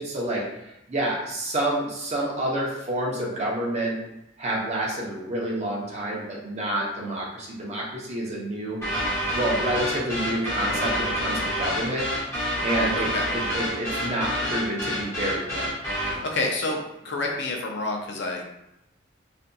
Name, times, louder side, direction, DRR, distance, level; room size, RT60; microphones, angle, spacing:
voice 1, 0.0-4.0 4.4-8.8 9.3-12.1 12.6-15.7, right 1 dB, 35° right, -4 dB, 0.7 m, -28 dB
sound 1, 8.8-16.2, equal, 15° left, 0.9 m, -28 dB
voice 2, 12.9-13.3 16.2-16.8 17.0-18.4, left 2 dB, 60° left, 1 dB, 0.5 m, -28 dB
2.6 x 2.5 x 2.2 m, 0.88 s
head